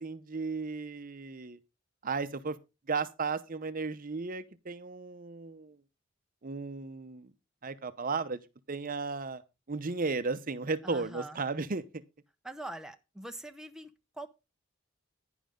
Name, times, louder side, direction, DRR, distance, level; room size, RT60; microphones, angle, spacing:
voice 1, 0.0-1.6 2.0-2.6 2.9-5.8 6.4-7.3 7.6-8.4 8.7-9.4 9.7-11.8, right 4 dB, 45° right, 0.8 m, -34 dB
voice 2, 10.8-11.4 12.4-14.3, right 1 dB, 5° right, 0.7 m, -43 dB
11.0 x 10.0 x 3.7 m
head